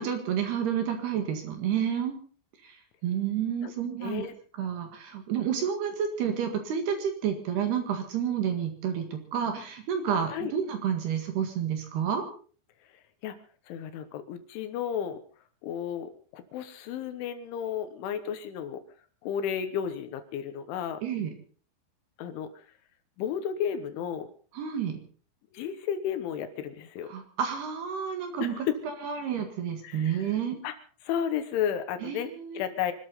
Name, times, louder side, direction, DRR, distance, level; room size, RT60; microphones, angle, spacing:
voice 1, 0.0-2.1 2.6-2.8 3.0-4.3 4.6-12.2 21.0-21.3 24.5-25.0 27.1-28.7 29.0-30.6 32.0-32.6, right 8 dB, 60° right, 6 dB, 3.4 m, -30 dB
voice 2, 4.0-4.3 10.3-10.5 13.2-13.4 13.7-15.2 15.6-18.8 19.2-21.0 22.2-22.5 23.2-24.3 25.5-27.1 28.4-28.7 29.8-30.3 30.6-30.7 31.0-32.9, left 9 dB, 75° left, 9 dB, 3.4 m, -33 dB
25.5 x 13.0 x 4.0 m, 0.41 s
omnidirectional pair, 6.0 m